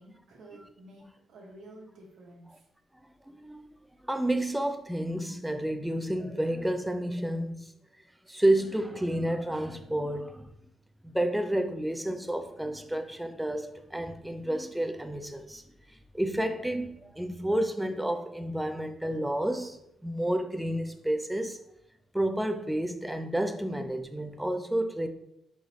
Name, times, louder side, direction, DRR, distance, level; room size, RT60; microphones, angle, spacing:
voice 1, 0.0-2.6 14.1-14.4, right 1 dB, 75° right, 1.1 m, -51 dB
voice 2, 3.3-3.6 4.1-7.7 8.3-10.5 11.0-15.6 16.1-21.6 22.1-25.1, right 1 dB, 5° right, 0.3 m, -30 dB
3.9 x 2.9 x 3.2 m
cardioid pair, 120°, 0 cm